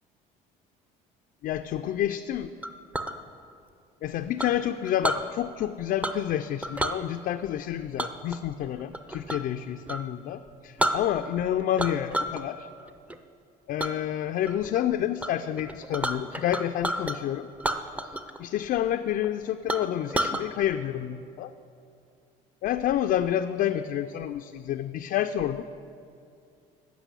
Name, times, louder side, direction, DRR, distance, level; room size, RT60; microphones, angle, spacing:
voice 1, 1.4-2.5 4.0-12.7 13.7-17.5 18.4-21.5 22.6-25.6, left 11 dB, 55° left, 7 dB, 0.4 m, -29 dB
Chink clink, 2.6-3.2 4.4-5.2 6.0-6.3 6.6-7.0 8.0-9.5 9.8-10.0 10.5-10.6 10.8-11.4 11.8-12.4 12.8-13.2 13.8-13.9 14.4-14.8 15.2-15.3 15.6-17.2 17.6-18.4 18.6-18.7 19.2-19.3 19.7-20.4, right 1 dB, 10° right, 0.6 m, -30 dB
8.2 x 6.0 x 8.1 m, 2.5 s
supercardioid pair, 85°, 18 cm